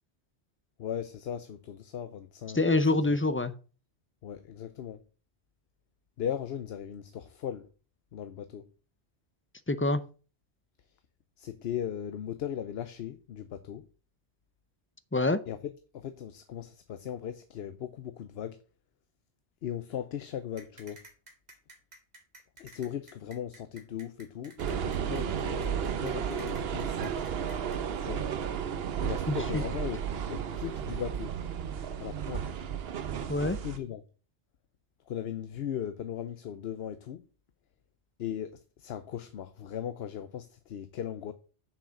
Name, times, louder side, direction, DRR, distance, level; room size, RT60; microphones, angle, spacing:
voice 1, 0.8-2.6 3.1-3.2 4.2-5.0 6.2-7.7 8.1-8.7 11.4-13.9 15.5-18.6 19.6-21.0 22.6-27.2 28.0-28.3 29.0-31.3 32.0-32.5 33.4-34.0 35.1-37.2 38.2-41.3, left 9 dB, 65° left, 0.9 m, -38 dB
voice 2, 2.5-3.5 9.7-10.0 15.1-15.4 29.3-29.6 33.3-33.6, left 2 dB, 20° left, 0.4 m, -26 dB
sound 1, 20.6-27.8, right 1 dB, 40° right, 2.0 m, -53 dB
sound 2, 24.6-33.8, right 8 dB, 65° right, 1.0 m, -33 dB
7.2 x 6.0 x 6.3 m
omnidirectional pair, 1.1 m